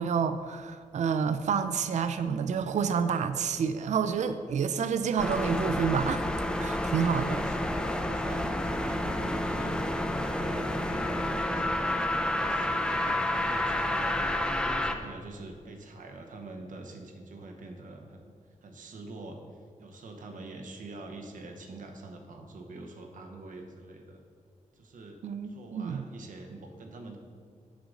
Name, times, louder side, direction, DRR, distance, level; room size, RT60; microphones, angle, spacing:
voice 1, 0.0-6.3 6.5-7.4 25.2-26.0, right 6 dB, 65° right, 11 dB, 0.4 m, -29 dB
sound 1, 5.2-14.9, left 1 dB, 5° left, 0.4 m, -29 dB
voice 2, 7.1-9.8 10.2-14.2 14.6-18.2 18.6-19.4 19.8-24.2 24.7-27.2, right 2 dB, 85° right, 3 dB, 0.9 m, -45 dB
8.1 x 6.3 x 3.8 m, 2.1 s
wide cardioid pair, 175°, 13 cm